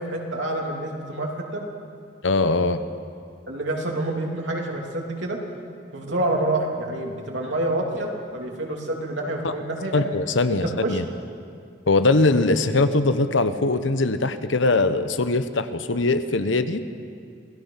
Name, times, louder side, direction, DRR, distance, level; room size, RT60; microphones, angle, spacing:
voice 1, 0.0-1.6 3.5-5.4 5.9-10.0 10.5-11.0, right 1 dB, 70° right, 0 dB, 3.2 m, -27 dB
voice 2, 2.2-2.8 9.4-9.5 9.9-11.0 11.9-16.8, left 3 dB, 80° left, 11 dB, 1.0 m, -21 dB
27.5 x 17.5 x 5.8 m, 2.3 s
head